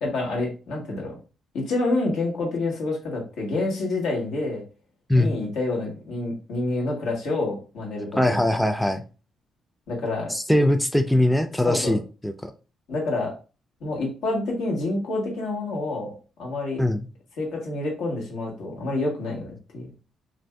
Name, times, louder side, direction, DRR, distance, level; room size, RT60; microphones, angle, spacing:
voice 1, 0.0-1.2 1.5-4.6 5.1-8.3 9.9-10.3 11.6-12.0 12.9-13.3 13.8-16.1 16.4-16.8 17.4-19.9, left 2 dB, 85° left, -1 dB, 1.4 m, -28 dB
voice 2, 8.2-9.0 10.3-12.5 16.8-17.1, left 1 dB, 5° left, 7 dB, 0.4 m, -21 dB
2.6 x 2.5 x 3.3 m, 0.34 s
cardioid pair, 90°, 0 cm